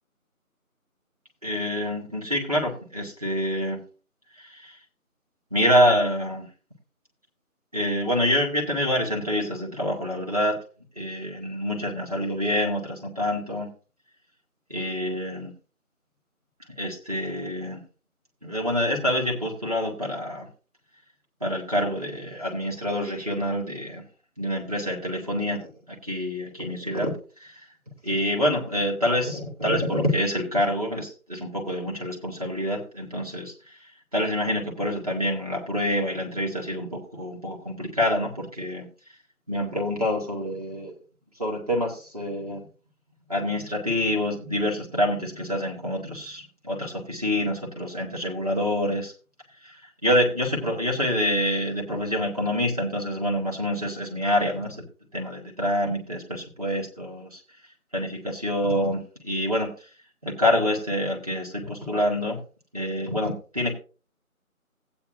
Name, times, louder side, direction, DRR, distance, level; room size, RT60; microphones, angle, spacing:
voice 1, 1.4-3.8 4.4-4.8 5.5-6.5 7.7-10.6 10.9-13.7 14.7-15.5 16.7-17.8 18.4-20.5 21.4-24.0 24.4-27.1 27.4-27.6 28.0-33.5 34.1-38.9 39.5-40.9 41.4-42.7 43.3-49.1 49.6-54.8 55.1-57.4 57.9-59.7 60.2-62.4 62.7-63.7, equal, 25° right, -1 dB, 1.7 m, -26 dB
15.5 x 8.8 x 2.5 m, 0.35 s
figure-of-eight pair, 175°, 44 cm